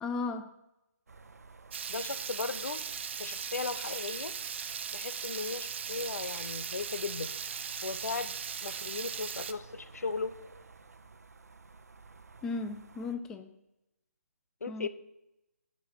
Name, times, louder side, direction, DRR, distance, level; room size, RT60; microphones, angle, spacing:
voice 1, 0.0-0.5 12.4-13.5 14.7-14.9, left 3 dB, 5° left, 7 dB, 0.3 m, -35 dB
sound 1, 1.1-13.2, right 4 dB, 70° right, 0.8 m, -53 dB
Water tap faucet / Liquid, 1.7-9.5, right 7 dB, 45° right, 0.5 m, -38 dB
voice 2, 1.9-2.8 3.2-4.3 4.9-7.3 7.8-10.3 14.6-14.9, left 4 dB, 70° left, 13 dB, 0.7 m, -37 dB
9.9 x 5.3 x 5.6 m, 0.89 s
figure-of-eight pair, 150°, 9 cm